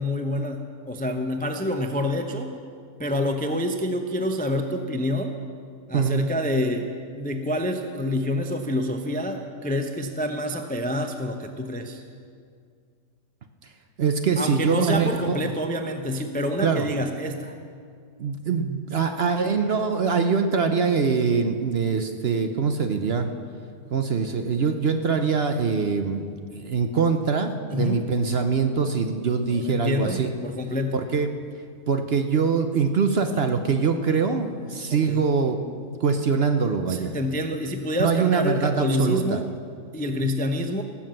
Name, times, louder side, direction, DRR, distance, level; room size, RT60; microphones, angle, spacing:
voice 1, 0.0-2.5 3.0-5.3 5.9-6.9 7.1-12.0 14.4-17.5 27.7-28.0 29.5-31.0 34.9-35.3 36.9-39.5 39.9-40.8, left 1 dB, 15° left, 5 dB, 0.3 m, -27 dB
voice 2, 14.0-15.4 16.6-16.9 18.2-23.3 23.9-26.2 26.5-30.3 30.9-31.3 31.9-35.6 36.0-37.1 38.0-39.4, right 5 dB, 50° right, 6 dB, 0.8 m, -23 dB
18.0 x 7.3 x 7.6 m, 2.2 s
omnidirectional pair, 1.6 m